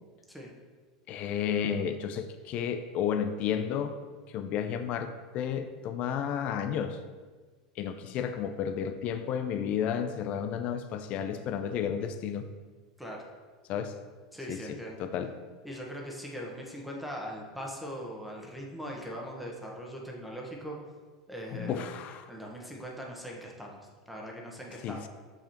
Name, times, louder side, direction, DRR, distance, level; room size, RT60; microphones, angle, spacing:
voice 1, 1.1-4.0 4.3-7.0 7.8-12.5 13.7-13.9 14.5-15.3 21.5-22.3 24.8-25.1, left 8 dB, 45° left, 9 dB, 0.5 m, -32 dB
voice 2, 14.3-15.0 15.6-20.8 21.3-21.9 22.3-25.1, equal, ahead, -1 dB, 1.2 m, -40 dB
6.7 x 5.6 x 3.0 m, 1.4 s
hypercardioid pair, 85°, 3 cm